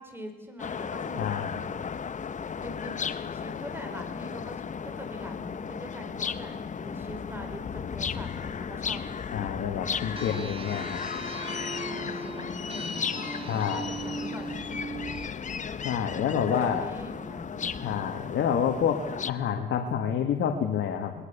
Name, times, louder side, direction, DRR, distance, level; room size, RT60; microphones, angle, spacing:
voice 1, 0.0-1.3 2.6-3.0 3.3-9.2 11.8-13.1 13.5-14.6 16.4-18.0, equal, 10° right, 6 dB, 4.3 m, -43 dB
sound 1, 0.6-19.3, left 6 dB, 40° left, 0.9 m, -35 dB
voice 2, 1.2-1.6 9.3-11.0 13.5-13.9 15.8-16.9 17.8-19.0 19.3-21.1, left 8 dB, 70° left, 3 dB, 1.9 m, -28 dB
sound 2, 10.2-15.3, right 3 dB, 25° right, 2.1 m, -39 dB
20.5 x 19.0 x 7.0 m, 1.1 s
cardioid pair, 90°, 20 cm